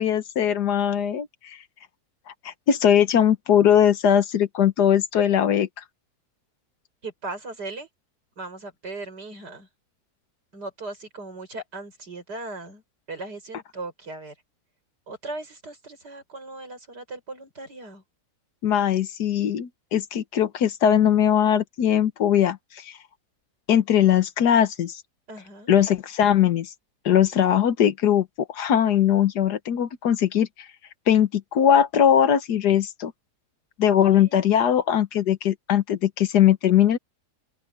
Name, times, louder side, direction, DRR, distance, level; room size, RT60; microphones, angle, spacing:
voice 1, 0.0-1.6 2.4-5.7 18.6-22.9 23.7-25.0 25.7-26.7 27.0-30.5 31.1-33.1 33.8-37.0, left 9 dB, 75° left, 1.6 m, -20 dB
voice 2, 7.0-7.9 8.4-9.7 10.5-12.8 13.1-14.3 15.1-18.0 25.3-25.7 34.1-34.4, right 2 dB, 85° right, 6.7 m, -38 dB
open air
omnidirectional pair, 1.7 m